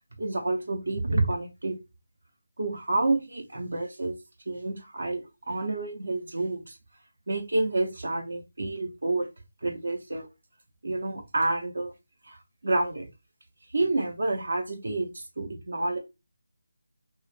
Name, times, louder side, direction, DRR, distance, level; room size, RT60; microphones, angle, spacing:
voice 1, 0.2-1.8 2.6-4.1 4.5-6.8 7.3-9.3 9.6-10.3 10.8-11.9 12.2-13.1 13.7-16.0, right 2 dB, 70° right, 0.7 m, -29 dB
2.4 x 2.1 x 3.1 m
figure-of-eight pair, 160°, 0 cm